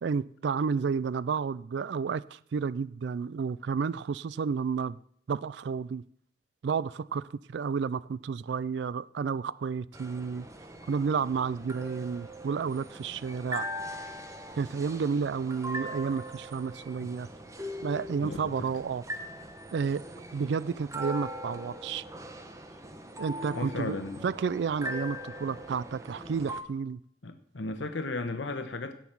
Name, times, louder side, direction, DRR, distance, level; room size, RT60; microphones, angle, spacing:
voice 1, 0.0-5.0 5.3-6.0 6.6-10.5 10.9-13.7 14.6-17.3 17.8-19.0 19.7-20.0 20.3-22.0 23.2-24.0 24.2-27.0, right 5 dB, 65° right, 0.3 m, -31 dB
sound 1, 9.9-26.6, equal, 15° right, 1.1 m, -41 dB
voice 2, 18.2-18.5 23.5-24.2 27.2-28.9, left 3 dB, 80° left, 1.0 m, -35 dB
16.5 x 5.9 x 6.0 m
head